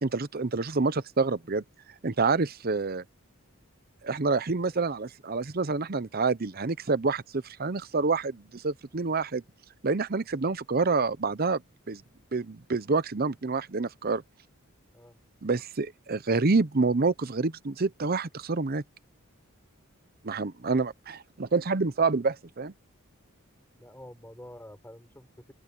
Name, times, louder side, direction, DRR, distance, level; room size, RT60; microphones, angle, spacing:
voice 1, 0.0-1.6 2.0-3.0 4.0-9.4 9.8-11.6 11.9-12.0 12.3-14.2 15.4-18.8 20.2-22.7, right 4 dB, 45° right, 0.8 m, -27 dB
voice 2, 23.8-25.5, left 1 dB, 10° left, 5.8 m, -48 dB
open air
head